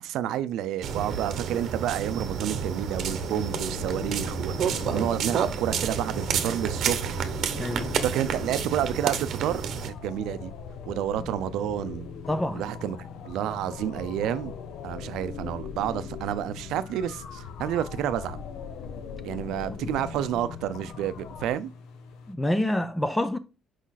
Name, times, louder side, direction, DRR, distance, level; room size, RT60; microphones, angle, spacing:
voice 1, 0.0-7.3 8.0-10.5 10.9-12.1 12.5-13.0 13.2-14.5 14.8-18.4 19.2-21.7, right 10 dB, 75° right, 0.5 m, -30 dB
sound 1, 0.8-9.9, right 7 dB, 50° right, 0.9 m, -30 dB
sound 2, 3.0-21.5, left 6 dB, 60° left, 0.8 m, -41 dB
voice 2, 7.6-7.9 12.3-12.6 22.3-23.4, left 1 dB, 5° left, 0.4 m, -27 dB
sound 3, 9.4-22.3, left 4 dB, 85° left, 1.1 m, -48 dB
6.2 x 5.0 x 4.1 m
cardioid pair, 160°, 0 cm